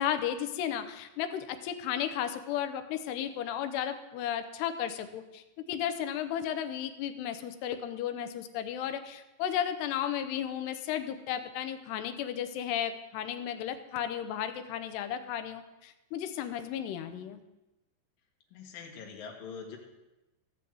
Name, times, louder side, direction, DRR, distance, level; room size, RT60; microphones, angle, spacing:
voice 1, 0.0-17.4, left 10 dB, 75° left, 9 dB, 2.7 m, -34 dB
voice 2, 18.5-19.8, left 5 dB, 60° left, 1 dB, 3.1 m, -43 dB
14.0 x 5.7 x 7.7 m, 1.0 s
omnidirectional pair, 5.1 m